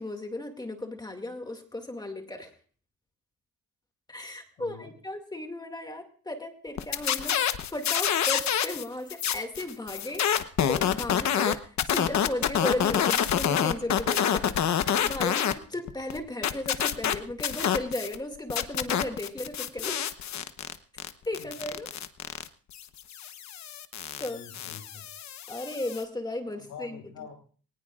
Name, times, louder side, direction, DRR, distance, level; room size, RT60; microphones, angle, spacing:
voice 1, 0.0-2.5 4.1-7.4 7.7-10.3 10.7-14.5 15.0-20.0 21.3-21.9 24.2-24.4 25.5-27.3, left 1 dB, 15° left, 4 dB, 2.3 m, -35 dB
voice 2, 4.6-4.9 21.4-21.5 24.3-25.1 26.6-27.3, left 6 dB, 80° left, 2 dB, 6.2 m, -45 dB
sound 1, 6.8-8.8 9.1-15.5 15.9-18.2 18.5-26.0, left 9 dB, 60° left, 1.1 m, -27 dB
22.0 x 19.0 x 2.5 m, 0.43 s
cardioid pair, 140°, 32 cm